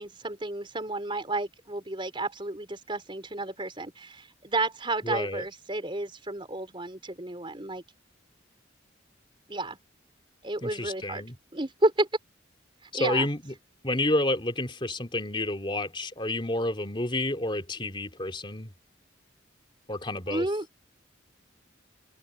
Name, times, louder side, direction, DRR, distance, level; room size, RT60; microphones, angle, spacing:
voice 1, 0.0-7.8 9.5-9.8 10.4-11.2 11.5-12.1 12.9-13.3 20.3-20.7, right 2 dB, 25° right, 4.0 m, -31 dB
voice 2, 5.0-5.4 10.6-11.3 12.9-13.5 13.8-18.7 19.9-20.5, left 1 dB, 25° left, 3.3 m, -29 dB
open air
head